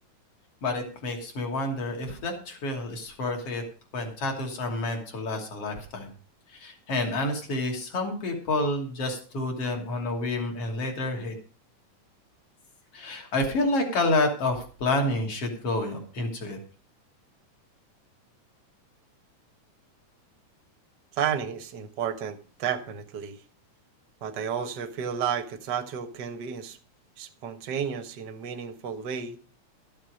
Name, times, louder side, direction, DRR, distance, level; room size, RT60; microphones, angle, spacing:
voice 1, 0.6-3.6 3.9-6.1 6.5-11.3 12.9-16.6, left 2 dB, 50° left, 3 dB, 3.7 m, -29 dB
voice 2, 21.2-23.4 24.2-26.8 27.2-29.4, right 8 dB, 50° right, 7 dB, 1.4 m, -32 dB
14.0 x 7.6 x 6.4 m, 0.39 s
omnidirectional pair, 3.5 m